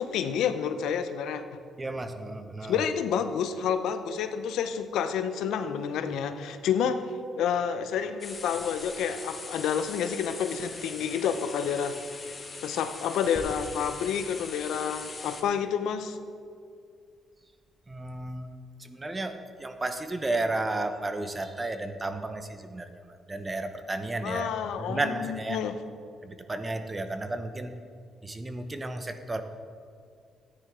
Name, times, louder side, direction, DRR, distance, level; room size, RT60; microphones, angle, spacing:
voice 1, 0.0-1.4 2.6-7.0 7.4-12.0 12.6-16.2 24.2-25.7, left 7 dB, 85° left, 9 dB, 0.7 m, -29 dB
voice 2, 1.8-2.9 17.9-18.5 18.8-24.5 24.8-25.6 26.2-27.7 28.2-29.4, right 2 dB, 20° right, 8 dB, 0.9 m, -33 dB
sound 1, 8.2-15.4, left 4 dB, 35° left, 1.6 m, -42 dB
sound 2, 13.4-16.9 17.6-17.7, equal, 5° left, 1.8 m, -48 dB
13.5 x 9.9 x 3.7 m, 2.3 s
cardioid pair, 90°, 0 cm